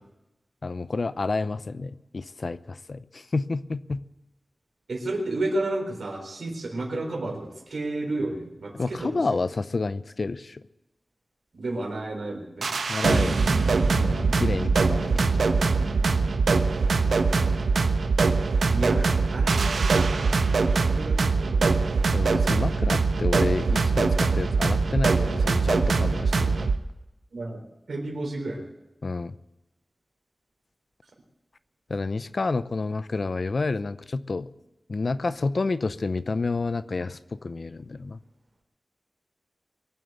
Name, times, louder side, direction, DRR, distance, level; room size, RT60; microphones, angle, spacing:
voice 1, 0.6-4.0 8.7-10.6 12.9-15.6 22.1-26.7 29.0-29.3 31.9-34.5 34.9-38.2, left 3 dB, 55° left, 14 dB, 0.7 m, -30 dB
voice 2, 4.9-9.1 11.5-12.7 18.7-20.4 20.9-21.8 27.3-27.6 27.9-28.6, right 2 dB, 70° right, 2 dB, 4.0 m, -31 dB
sound 1, 12.6-26.8, right 4 dB, 90° right, 1.0 m, -22 dB
23.0 x 7.6 x 8.1 m, 0.96 s
wide cardioid pair, 95°, 0 cm